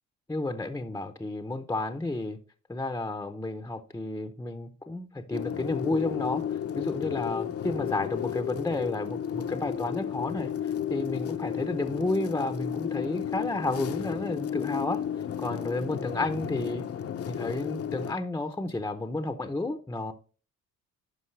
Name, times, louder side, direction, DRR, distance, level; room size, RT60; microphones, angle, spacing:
voice 1, 0.3-2.4 2.7-10.5 10.9-15.0 15.4-16.8 17.3-20.1, left 2 dB, 10° left, 0.7 m, -31 dB
sound 1, 5.3-18.1, left 9 dB, 50° left, 0.7 m, -33 dB
11.5 x 5.1 x 3.2 m
cardioid pair, 90°, 30 cm